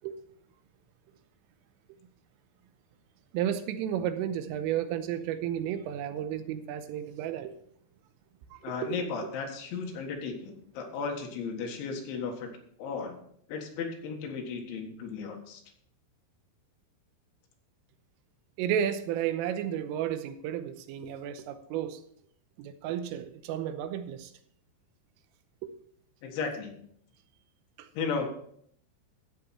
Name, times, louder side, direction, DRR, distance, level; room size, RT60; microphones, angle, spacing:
voice 1, 3.3-7.6 8.5-9.0 18.6-22.0 22.6-24.3 25.6-25.7 27.8-27.9, right 10 dB, 90° right, 10 dB, 3.3 m, -32 dB
voice 2, 8.6-12.5 12.8-13.2 13.5-15.6 26.2-26.8 28.0-28.4, left 5 dB, 70° left, 2 dB, 3.7 m, -35 dB
13.0 x 8.6 x 4.2 m, 0.64 s
omnidirectional pair, 5.9 m